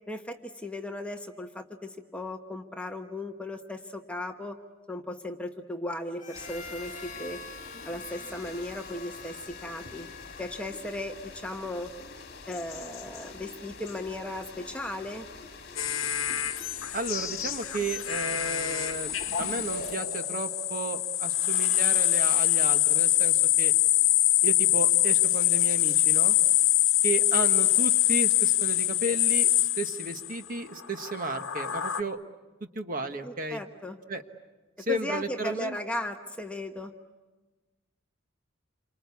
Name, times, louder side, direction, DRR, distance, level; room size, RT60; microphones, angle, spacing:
voice 1, 0.1-4.6 4.9-7.4 7.8-10.1 10.4-11.9 12.5-15.3 33.2-34.0 34.8-36.9, left 1 dB, 5° left, 4 dB, 1.1 m, -36 dB
Harmonica, 6.2-11.2, left 4 dB, 35° left, 1.2 m, -46 dB
sound 1, 6.3-19.9, left 4 dB, 50° left, 2.3 m, -46 dB
sound 2, 15.8-30.3 30.9-32.0, left 13 dB, 75° left, 1.1 m, -24 dB
voice 2, 16.9-23.7 24.4-26.4 27.0-32.2 32.7-33.6 34.1-34.2 34.9-35.8, right 2 dB, 40° right, 7 dB, 1.3 m, -33 dB
28.5 x 24.5 x 8.4 m, 1.2 s
head